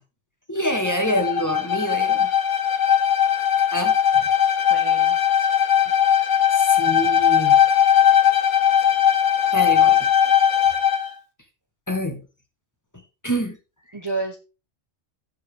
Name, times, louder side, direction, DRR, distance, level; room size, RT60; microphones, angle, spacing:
voice 1, 0.5-2.3 2.8-2.9 3.7-3.9 6.5-7.6 9.5-10.1 11.9-12.2 13.2-13.6, equal, 15° left, 2.1 m, -26 dB
Bowed string instrument, 0.6-11.1, left 9 dB, 90° left, 1.4 m, -19 dB
voice 2, 4.7-5.2 13.9-14.4, right 3 dB, 20° right, 1.1 m, -29 dB
16.0 x 5.6 x 3.6 m
omnidirectional pair, 1.2 m